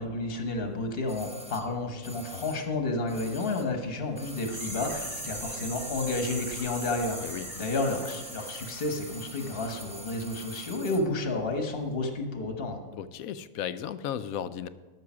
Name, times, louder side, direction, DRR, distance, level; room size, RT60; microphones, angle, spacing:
voice 1, 0.0-12.8, left 2 dB, 45° left, 5 dB, 1.4 m, -31 dB
sound 1, 1.1-3.8 4.1-11.1 11.4-11.5, right 1 dB, 10° right, 0.5 m, -45 dB
sound 2, 4.2-9.8 10.1-10.2, right 1 dB, 45° right, 4.1 m, -40 dB
voice 2, 13.0-14.7, left 9 dB, 80° left, 13 dB, 1.0 m, -35 dB
13.0 x 6.5 x 6.1 m, 1.3 s
omnidirectional pair, 1.5 m